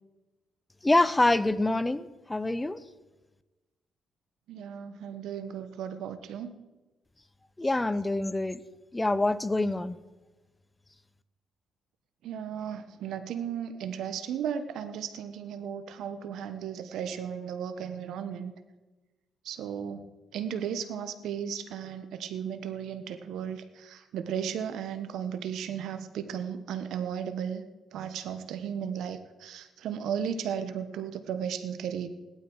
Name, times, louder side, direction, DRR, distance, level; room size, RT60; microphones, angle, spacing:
voice 1, 0.8-2.8 7.6-8.6 8.9-10.0, left 2 dB, 15° left, 15 dB, 0.7 m, -26 dB
voice 2, 4.5-6.5 12.2-18.5 19.4-20.0 20.3-27.6 27.9-32.1, right 8 dB, 80° right, 10 dB, 1.2 m, -35 dB
17.5 x 12.0 x 4.7 m, 1.2 s
cardioid pair, 90°, 0 cm